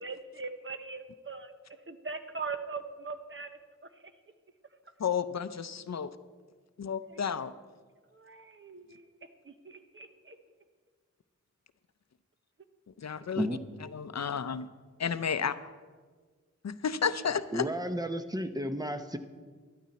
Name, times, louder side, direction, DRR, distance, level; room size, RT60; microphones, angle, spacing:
voice 1, 0.0-1.5 1.9-3.6 4.0-4.1 7.1-7.2 8.1-9.1 9.4-10.4, right 4 dB, 45° right, 8 dB, 1.0 m, -41 dB
voice 2, 5.0-6.1 6.8-7.5 13.0-13.5 13.9-14.7 15.0-15.6 16.6-17.7, left 6 dB, 65° left, 13 dB, 0.6 m, -32 dB
voice 3, 17.5-19.2, equal, 15° right, 8 dB, 0.9 m, -32 dB
13.0 x 12.0 x 4.2 m, 1.5 s
cardioid pair, 50°, 29 cm